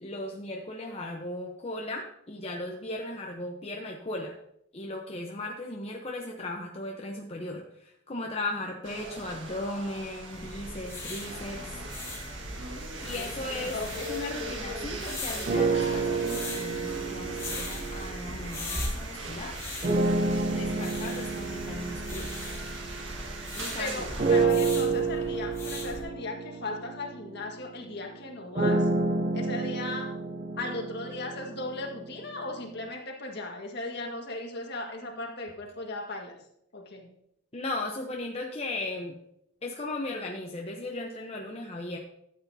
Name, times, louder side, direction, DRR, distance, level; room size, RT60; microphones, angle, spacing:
voice 1, 0.0-4.3 4.7-11.8 13.0-13.8 14.1-19.6 20.5-22.3 23.6-25.1 37.5-39.2 39.6-42.0, left 2 dB, 30° left, 0 dB, 0.8 m, -37 dB
sound 1, 8.8-24.4, right 2 dB, 80° right, 1.6 m, -40 dB
sound 2, 10.3-26.0, left 1 dB, 15° left, 2.4 m, -40 dB
voice 2, 13.7-14.1 23.8-28.9 29.3-30.1 30.6-36.4 36.7-37.1, left 2 dB, 60° left, 1 dB, 1.7 m, -37 dB
sound 3, 15.5-19.0 19.8-23.6 24.2-32.1, right 3 dB, 40° right, 0.6 m, -29 dB
13.0 x 8.3 x 2.7 m, 0.75 s
head